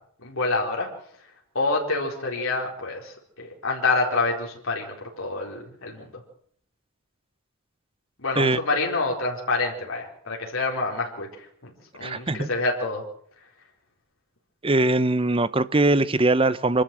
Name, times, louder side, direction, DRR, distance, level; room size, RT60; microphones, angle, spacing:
voice 1, 0.2-0.9 1.5-6.1 8.2-13.0, left 3 dB, 85° left, 4.3 m, -27 dB
voice 2, 12.0-12.5 14.6-16.8, right 2 dB, 25° right, 0.8 m, -21 dB
25.5 x 13.0 x 7.7 m
head